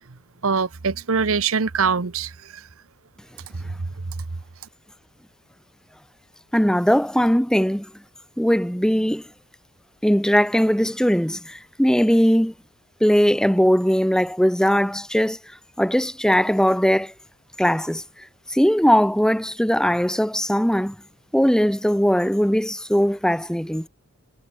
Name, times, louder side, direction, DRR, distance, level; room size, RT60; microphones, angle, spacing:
voice 1, 0.4-2.6 4.1-4.2, right 5 dB, 70° right, 0.9 m, -23 dB
voice 2, 6.5-7.9 8.4-9.2 10.0-12.5 13.0-15.4 15.8-17.1 17.6-18.0 18.5-20.9 21.3-23.9, equal, 5° left, 1.5 m, -19 dB
head